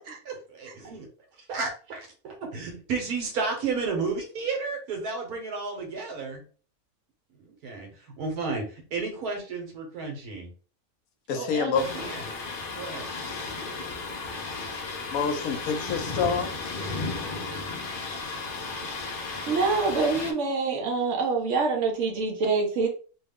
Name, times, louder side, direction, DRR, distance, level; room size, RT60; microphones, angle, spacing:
voice 1, 0.3-1.1 1.4-6.4 7.4-7.9 8.2-10.5 11.3-12.3 12.7-13.1, right 4 dB, 80° right, 1.5 m, -32 dB
voice 2, 11.3-11.9 15.1-16.5, left 6 dB, 75° left, 1.0 m, -27 dB
Thunder, 11.7-20.3, left 3 dB, 60° left, 0.5 m, -34 dB
voice 3, 19.5-22.9, right 4 dB, 60° right, 0.9 m, -25 dB
3.0 x 2.3 x 3.5 m
omnidirectional pair, 1.6 m